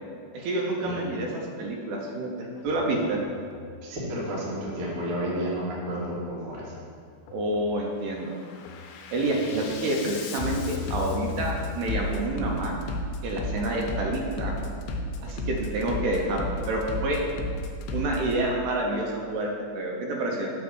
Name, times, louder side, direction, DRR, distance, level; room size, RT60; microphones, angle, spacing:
voice 1, 0.3-3.2 7.3-8.3 9.1-12.8 13.2-14.6 15.2-17.2 17.9-20.5, right 1 dB, 80° right, 0 dB, 2.8 m, -28 dB
Bass drum, 2.6-2.8 3.3-3.8 4.6-4.8 5.3-5.8 6.6-6.8 7.3-7.8 8.2-18.4, left 2 dB, 80° left, 2.2 m, -34 dB
voice 2, 3.8-6.7, equal, 55° right, -6 dB, 1.5 m, -31 dB
7.2 x 3.6 x 6.1 m, 2.2 s
omnidirectional pair, 4.8 m